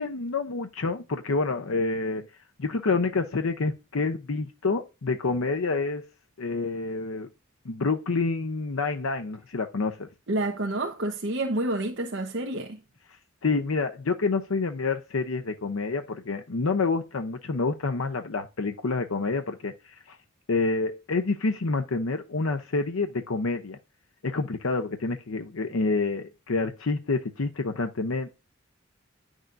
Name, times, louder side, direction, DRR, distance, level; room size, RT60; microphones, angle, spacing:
voice 1, 0.0-2.3 2.6-6.1 6.4-7.3 7.6-10.1 13.4-20.2 20.5-23.8 24.2-28.4, left 3 dB, 90° left, 0.7 m, -28 dB
voice 2, 10.3-12.8, right 1 dB, 60° right, 1.0 m, -29 dB
10.5 x 6.4 x 2.6 m
head